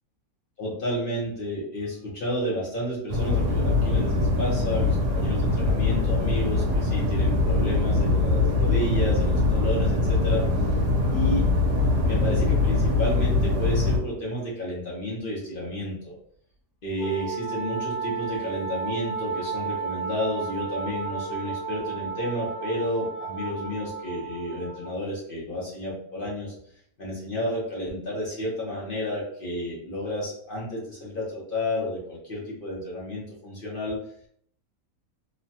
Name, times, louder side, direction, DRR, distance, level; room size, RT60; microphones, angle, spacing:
voice 1, 0.6-10.5 11.1-11.5 12.0-16.1 16.8-26.5 27.0-34.0, left 1 dB, 50° left, -5 dB, 0.6 m, -31 dB
sound 1, 3.1-14.0, left 3 dB, 75° right, 1.2 m, -23 dB
Wind instrument woodwind instrument, 17.0-25.0, right 5 dB, 65° left, 1.2 m, -33 dB
3.0 x 2.1 x 2.7 m, 0.65 s
omnidirectional pair, 1.8 m